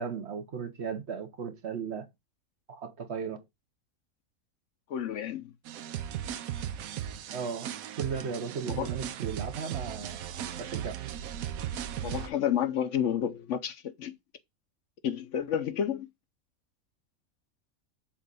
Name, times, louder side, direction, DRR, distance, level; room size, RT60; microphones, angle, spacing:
voice 1, 0.0-2.1 2.7-3.4 7.3-10.2 10.6-11.0, right 6 dB, 55° right, 1.0 m, -36 dB
voice 2, 4.9-5.5 8.7-9.0 12.0-14.2 15.0-16.1, left 9 dB, 65° left, 0.9 m, -30 dB
sound 1, 5.7-12.3, right 10 dB, 80° right, 1.0 m, -37 dB
7.3 x 2.5 x 5.2 m
omnidirectional pair, 1.5 m